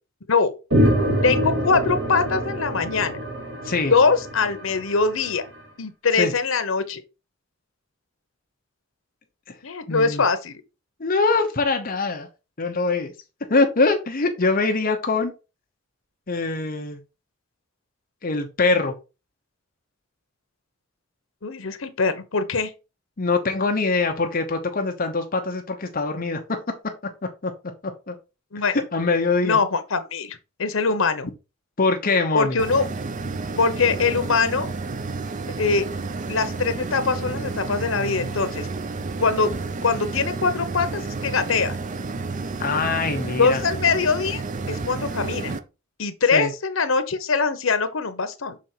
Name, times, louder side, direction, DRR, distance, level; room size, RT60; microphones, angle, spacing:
sound 1, 0.7-5.4, equal, 75° right, 2.3 m, -25 dB
voice 1, 1.2-3.2 3.9-5.4 5.8-7.0 9.6-10.6 21.4-22.7 28.5-28.8 29.4-31.3 32.3-32.8 33.6-34.7 35.6-35.9 36.3-38.7 39.2-39.5 39.8-41.8 43.4-44.4 44.7-45.6 46.0-48.6, left 4 dB, 85° left, 0.9 m, -22 dB
voice 2, 9.9-10.2 11.0-12.3 12.6-13.1 13.5-15.3 16.3-17.0 18.2-18.9 23.2-26.4 27.4-27.5 28.1-28.2 28.6-29.6 31.8-32.6 42.6-43.6 46.3-46.5, left 3 dB, 45° left, 0.9 m, -23 dB
sound 2, 32.6-45.6, right 3 dB, 40° right, 0.5 m, -31 dB
6.3 x 3.9 x 4.4 m
head